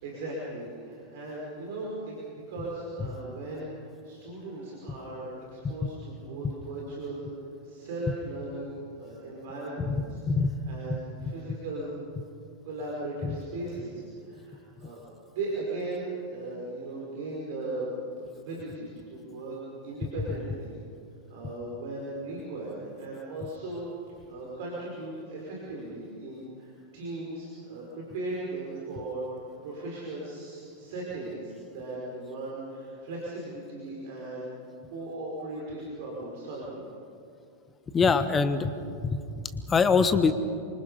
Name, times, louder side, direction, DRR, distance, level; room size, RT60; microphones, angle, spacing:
voice 1, 0.0-7.3 7.6-11.9 12.6-15.0 15.3-19.6 19.8-20.7 21.3-23.9 24.3-29.3 29.6-34.5 34.9-36.8, right 2 dB, 50° right, -4 dB, 5.3 m, -37 dB
voice 2, 37.9-38.7 39.0-39.2 39.7-40.3, left 5 dB, 20° left, 11 dB, 1.3 m, -23 dB
27.5 x 25.0 x 5.6 m, 2.5 s
figure-of-eight pair, 90°, 0 cm